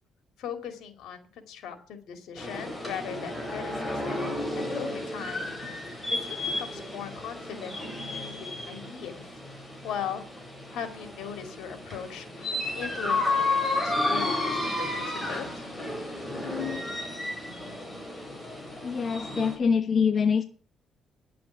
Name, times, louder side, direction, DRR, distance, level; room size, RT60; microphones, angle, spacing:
voice 1, 0.4-4.3 4.6-5.5 5.8-6.0 6.3-9.2 9.8-10.3 10.7-15.7, left 8 dB, 80° left, 9 dB, 2.5 m, -39 dB
sound 1, 2.4-19.6, left 2 dB, 15° left, 4.8 m, -32 dB
voice 2, 18.8-20.4, left 6 dB, 45° left, 8 dB, 1.1 m, -24 dB
10.5 x 7.7 x 9.5 m, 0.43 s
cardioid pair, 90°, 0 cm